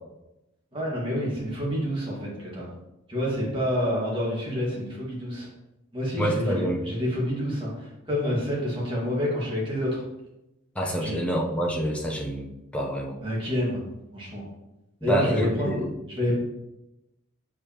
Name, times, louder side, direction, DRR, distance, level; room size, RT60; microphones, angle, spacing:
voice 1, 0.7-2.7 3.1-5.5 5.9-10.0 11.0-11.2 13.2-13.8 14.1-14.4 15.0-15.7 16.2-16.3, equal, 25° right, -5 dB, 1.8 m, -28 dB
voice 2, 6.2-6.8 10.7-13.2 15.0-15.9, equal, 5° left, -1 dB, 0.7 m, -27 dB
6.7 x 4.9 x 2.9 m, 0.93 s
head